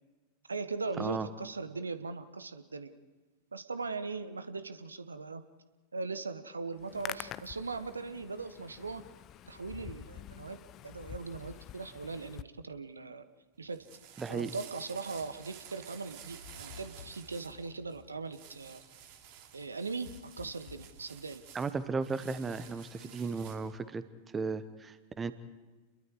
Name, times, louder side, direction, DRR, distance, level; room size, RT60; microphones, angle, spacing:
voice 1, 0.5-2.9 3.5-5.4 5.9-9.0 9.5-10.6 10.8-13.2 13.6-13.9 14.3-18.8 19.5-20.1 20.4-21.4, right 4 dB, 75° right, 12 dB, 1.1 m, -39 dB
Hands, 6.8-12.4, left 12 dB, 35° left, 0.7 m, -47 dB
Fuego Lampara, 13.5-23.7, right 8 dB, 50° right, 3.2 m, -53 dB
voice 2, 14.2-14.5 21.5-24.0 24.3-25.3, right 4 dB, 15° right, 13 dB, 1.2 m, -35 dB
sound 1, 16.4-17.4 20.0-21.0, left 10 dB, 55° left, 1.1 m, -52 dB
30.0 x 22.5 x 4.8 m, 1.2 s
figure-of-eight pair, 90°, 0 cm